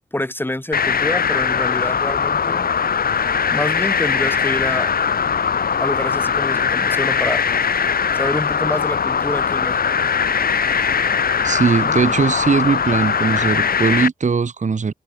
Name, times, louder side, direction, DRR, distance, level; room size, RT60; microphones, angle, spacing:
voice 1, 0.1-2.7 3.5-5.0 5.8-7.4 8.1-9.9, left 1 dB, 15° left, 3.7 m, -26 dB
sound 1, 0.7-14.1, left 6 dB, 75° left, 1.1 m, -20 dB
voice 2, 11.4-14.9, right 5 dB, 50° right, 1.3 m, -19 dB
wide cardioid pair, 130°, 15 cm